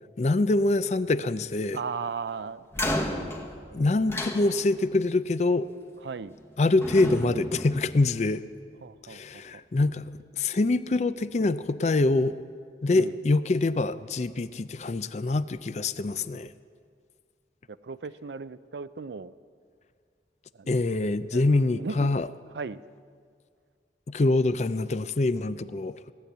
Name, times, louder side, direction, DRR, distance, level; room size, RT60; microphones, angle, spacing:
voice 1, 0.2-1.8 3.7-5.7 6.6-8.4 9.1-10.1 10.4-12.4 12.8-16.5 20.7-22.3 24.1-26.1, left 2 dB, 40° left, 14 dB, 0.4 m, -25 dB
voice 2, 1.7-3.3 6.0-6.4 8.8-9.4 12.9-13.2 16.2-16.3 17.7-19.3 20.5-20.8 21.3-21.4 21.7-22.1 22.5-22.8, right 5 dB, 80° right, 15 dB, 0.5 m, -37 dB
sound 1, 2.7-5.0 6.1-6.5 6.8-8.6, left 1 dB, 15° left, 1.1 m, -33 dB
17.0 x 10.0 x 8.0 m, 2.1 s
head